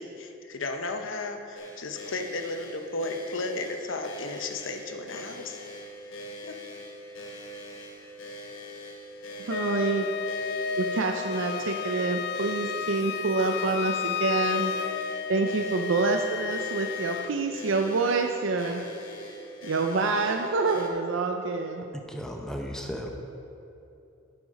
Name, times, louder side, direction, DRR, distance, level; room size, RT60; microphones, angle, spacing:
voice 1, 0.0-5.6 6.4-6.6, left 2 dB, 75° left, 5 dB, 0.8 m, -34 dB
sound 1, 1.5-20.9, equal, 90° left, 1.4 m, -43 dB
Wind instrument woodwind instrument, 9.5-17.3, left 7 dB, 55° left, 0.3 m, -32 dB
voice 2, 9.5-10.1 10.8-14.7 15.3-18.8 19.6-21.8, right 3 dB, 70° right, 4 dB, 0.5 m, -27 dB
voice 3, 21.9-23.1, equal, 5° left, 1 dB, 0.7 m, -35 dB
8.7 x 7.9 x 5.3 m, 2.8 s
head